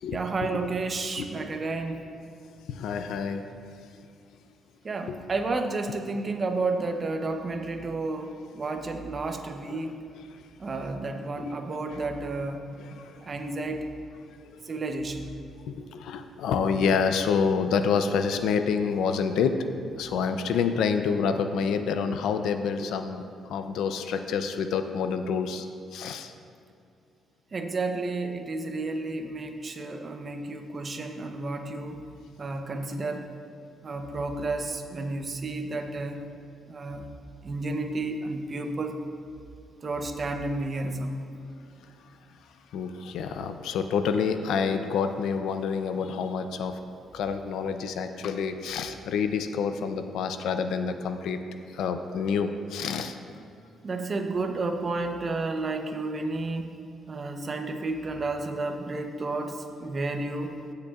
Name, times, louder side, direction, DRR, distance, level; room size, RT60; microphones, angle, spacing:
voice 1, 0.1-2.0 4.8-10.0 10.6-12.6 13.2-13.9 14.6-15.2 27.5-32.0 32.4-33.3 33.8-36.2 36.7-37.0 37.4-39.0 39.8-41.1 53.8-56.8 57.1-60.5, right 3 dB, 40° right, 5 dB, 0.8 m, -31 dB
voice 2, 2.7-3.4 4.0-4.1 5.1-5.2 9.7-9.8 10.3-10.4 11.9-12.0 12.8-13.3 14.5-14.6 15.6-19.6 20.0-25.7 25.9-26.3 42.7-46.8 47.1-51.4 51.7-53.2, left 6 dB, 80° left, 8 dB, 0.5 m, -28 dB
16.0 x 6.7 x 2.4 m, 2.4 s
cardioid pair, 90°, 0 cm